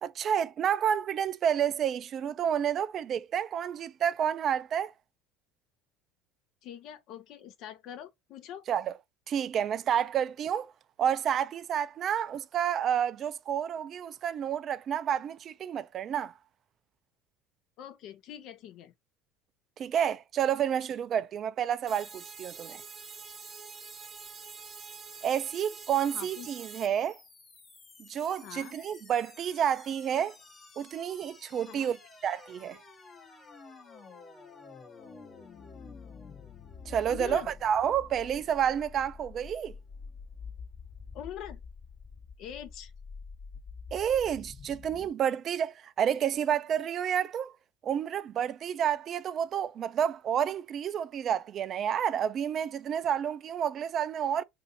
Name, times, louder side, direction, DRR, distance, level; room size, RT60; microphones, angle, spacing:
voice 1, 0.0-4.9 8.7-8.9 9.3-10.7 11.0-16.3 19.8-22.8 25.2-27.2 28.0-30.4 30.8-32.0 32.2-32.8 36.9-39.7 43.9-47.5 47.8-54.4, right 9 dB, 45° right, 0.4 m, -30 dB
voice 2, 6.6-8.6 17.8-18.9 26.1-26.5 28.4-28.7 31.6-31.9 37.0-37.5 41.1-41.6 42.4-42.9, left 10 dB, 60° left, 0.7 m, -43 dB
sound 1, 21.9-26.9, right 5 dB, 30° right, 0.8 m, -46 dB
sound 2, 26.1-45.1, left 5 dB, 30° left, 0.9 m, -49 dB
2.6 x 2.6 x 3.9 m
supercardioid pair, 100°, 0 cm